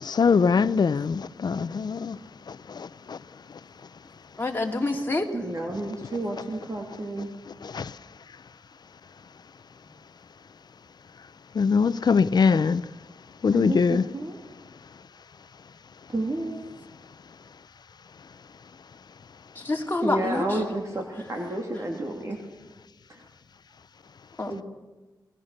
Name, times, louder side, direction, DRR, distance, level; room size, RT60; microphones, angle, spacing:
voice 1, 0.0-2.2 2.5-3.2 7.7-7.9 11.5-12.8 13.4-14.0, left 5 dB, 65° left, 0.7 m, -22 dB
voice 2, 4.4-5.3 19.5-20.6 24.4-24.5, left 2 dB, 25° left, 2.6 m, -27 dB
voice 3, 5.3-7.3 13.5-14.4 16.1-16.6 20.0-22.4 23.1-23.2 24.5-24.6, right 2 dB, 40° right, 3.0 m, -31 dB
29.0 x 19.5 x 6.7 m
wide cardioid pair, 110°, 8 cm